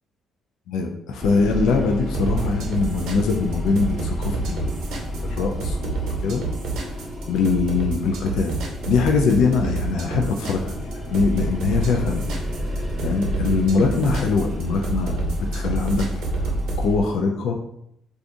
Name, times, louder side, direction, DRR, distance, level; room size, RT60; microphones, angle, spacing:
voice 1, 0.7-4.8 5.2-6.4 7.3-8.6 8.9-12.3 12.7-16.0 16.4-16.5 16.8-17.5, left 4 dB, 80° left, 2 dB, 0.4 m, -23 dB
sound 1, 1.2-17.0, equal, 15° left, 1.1 m, -30 dB
sound 2, 2.1-16.8, right 4 dB, 80° right, 0.7 m, -29 dB
2.6 x 2.4 x 3.6 m, 0.75 s
cardioid pair, 110°, 0 cm